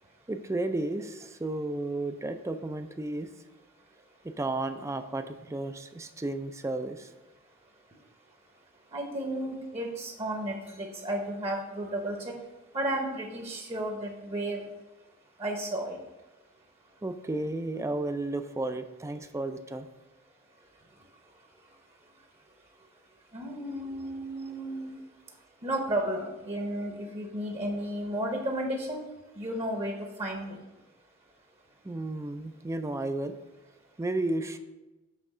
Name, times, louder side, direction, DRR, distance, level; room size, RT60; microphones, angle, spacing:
voice 1, 0.3-3.3 4.2-7.1 17.0-19.9 31.8-33.3 34.0-34.6, right 2 dB, 15° right, 9 dB, 0.3 m, -33 dB
voice 2, 8.9-12.4 12.7-14.6 15.4-16.0 23.3-24.9 25.6-29.0 29.4-30.6, right 1 dB, 30° right, 1 dB, 0.9 m, -33 dB
7.7 x 3.5 x 6.0 m, 1.1 s
head